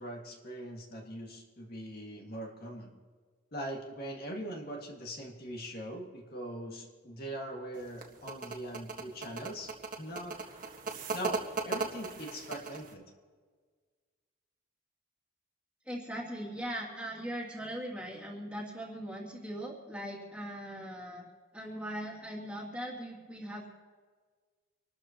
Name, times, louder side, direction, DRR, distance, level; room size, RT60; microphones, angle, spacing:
voice 1, 0.0-2.9 3.5-9.7 10.0-10.4 11.1-13.0, right 1 dB, 50° left, 0 dB, 2.0 m, -41 dB
sound 1, 7.8-12.9, right 4 dB, 45° right, 1.5 m, -37 dB
voice 2, 15.9-21.3 21.5-23.7, equal, 5° right, -4 dB, 2.5 m, -40 dB
26.5 x 13.0 x 3.0 m, 1.5 s
head